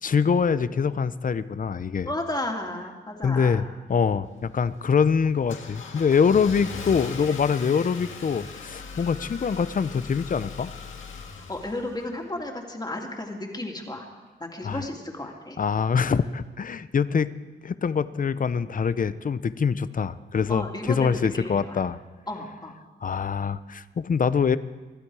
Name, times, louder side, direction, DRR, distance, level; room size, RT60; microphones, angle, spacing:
voice 1, 0.0-2.1 3.2-10.7 14.6-14.9 15.6-17.3 17.6-22.0 23.0-24.6, left 6 dB, 45° left, 15 dB, 0.6 m, -24 dB
voice 2, 2.0-3.6 11.5-14.1 14.4-15.6 20.5-21.8 22.3-22.8, left 1 dB, 20° left, 1 dB, 2.7 m, -33 dB
Car / Engine starting, 4.2-12.4, left 4 dB, 80° left, 2.1 m, -40 dB
25.0 x 12.0 x 4.8 m, 1.3 s
cardioid pair, 85°, 20 cm